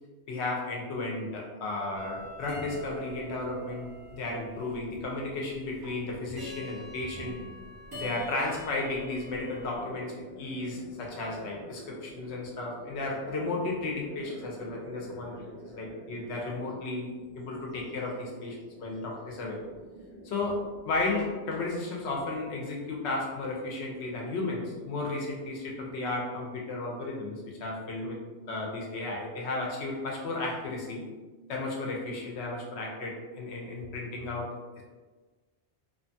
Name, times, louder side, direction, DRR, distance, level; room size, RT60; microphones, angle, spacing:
voice 1, 0.3-7.4 7.9-17.1 17.4-19.6 20.2-28.2 28.5-31.0 31.5-34.8, left 2 dB, 80° left, -1 dB, 0.9 m, -34 dB
sound 1, 2.0-9.8, equal, 20° right, 0.9 m, -45 dB
sound 2, 9.7-26.0, equal, 5° left, 0.5 m, -50 dB
2.8 x 2.2 x 2.6 m, 1.3 s
omnidirectional pair, 1.1 m